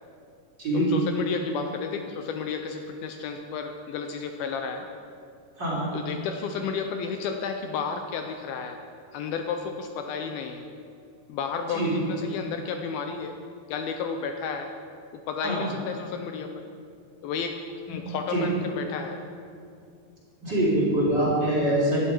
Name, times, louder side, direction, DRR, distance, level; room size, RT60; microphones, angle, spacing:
voice 1, 0.7-4.9 5.9-8.8 9.1-10.7 11.3-13.3 13.7-14.7 15.1-16.6 17.2-17.6 17.9-19.2, left 5 dB, 75° left, 5 dB, 2.4 m, -32 dB
voice 2, 5.6-5.9 11.7-11.9 15.4-15.6 17.9-18.0 18.3-18.4 20.4-22.0, right 1 dB, 25° right, -7 dB, 3.9 m, -24 dB
16.5 x 12.0 x 4.5 m, 2.4 s
omnidirectional pair, 4.6 m